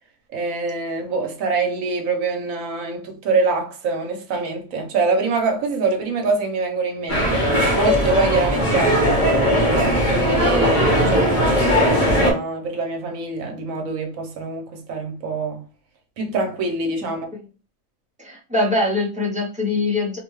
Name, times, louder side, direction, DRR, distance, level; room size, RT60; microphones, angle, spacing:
voice 1, 0.3-7.4 7.7-9.2 9.6-15.6 16.2-17.3, right 3 dB, 70° right, 1.0 m, -24 dB
sound 1, 7.1-12.3, equal, 40° left, 0.9 m, -18 dB
voice 2, 18.2-20.2, left 2 dB, 10° right, 0.4 m, -23 dB
2.9 x 2.2 x 3.0 m
omnidirectional pair, 1.5 m